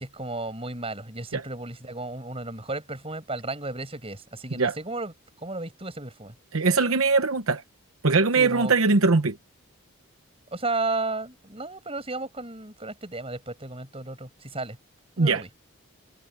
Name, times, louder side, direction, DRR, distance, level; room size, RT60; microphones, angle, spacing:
voice 1, 0.0-5.1 5.4-6.3 8.4-8.7 10.5-14.8 15.2-15.5, right 2 dB, 25° right, 6.6 m, -33 dB
voice 2, 6.5-7.6 8.0-9.4 15.2-15.4, right 4 dB, 70° right, 1.0 m, -21 dB
head